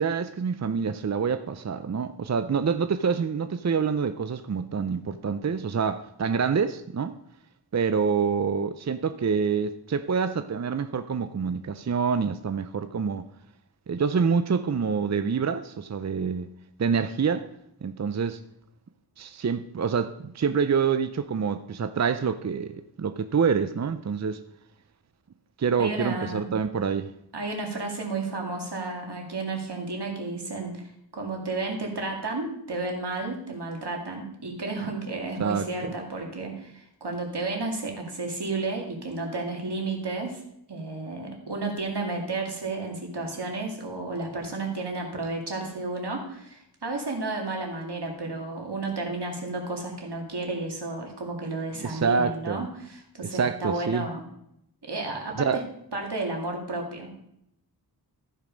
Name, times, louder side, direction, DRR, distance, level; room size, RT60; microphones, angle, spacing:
voice 1, 0.0-7.2 7.7-13.3 13.9-16.5 16.8-17.5 17.8-18.4 19.2-24.4 25.6-27.1 35.4-35.9 51.8-52.7 53.3-54.1 55.4-55.6, right 6 dB, 45° right, 0.5 m, -26 dB
voice 2, 25.8-26.5 27.3-40.4 40.7-54.2 54.8-55.6 55.9-57.1, right 3 dB, 85° right, 2.2 m, -32 dB
14.5 x 5.2 x 5.2 m
wide cardioid pair, 45°, 39 cm